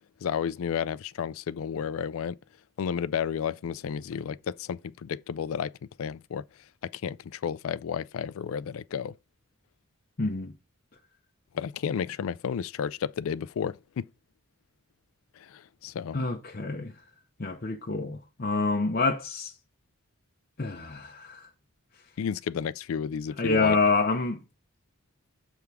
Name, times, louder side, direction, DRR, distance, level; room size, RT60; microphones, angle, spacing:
voice 1, 0.2-2.4 2.8-5.7 6.0-6.4 6.8-9.2 11.5-14.0 15.4-16.2 22.2-23.8, left 7 dB, 70° left, 0.3 m, -32 dB
voice 2, 10.2-10.5 16.1-16.9 17.4-19.5 20.6-21.5 23.4-24.4, left 3 dB, 45° left, 0.7 m, -27 dB
6.9 x 3.6 x 4.6 m
head